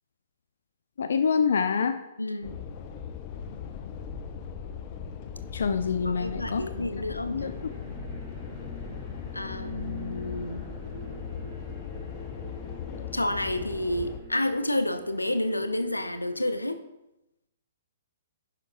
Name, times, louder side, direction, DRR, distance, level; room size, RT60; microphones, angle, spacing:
voice 1, 1.0-2.0 5.5-6.6 7.3-7.5, left 6 dB, 60° left, 9 dB, 0.6 m, -26 dB
voice 2, 2.2-2.6 5.6-5.7 6.0-7.5 9.3-10.7 13.1-16.8, left 1 dB, 85° left, 10 dB, 0.9 m, -30 dB
sound 1, 2.4-14.2, left 7 dB, 35° left, 0.9 m, -39 dB
sound 2, 7.4-16.6, equal, 30° right, 3.0 m, -46 dB
11.0 x 6.8 x 3.8 m, 0.93 s
figure-of-eight pair, 120°, 0 cm